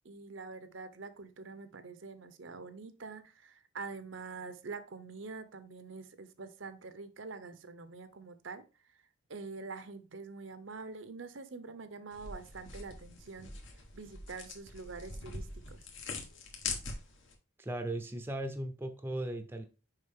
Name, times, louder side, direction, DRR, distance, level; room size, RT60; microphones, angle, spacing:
voice 1, 0.0-8.6 9.3-13.5 13.9-15.8, right 4 dB, 65° right, 11 dB, 0.7 m, -45 dB
sound 1, 12.1-17.3, left 4 dB, 65° left, 1.5 m, -43 dB
voice 2, 17.6-19.6, right 1 dB, 10° right, 7 dB, 0.6 m, -37 dB
6.5 x 5.0 x 3.6 m, 0.33 s
head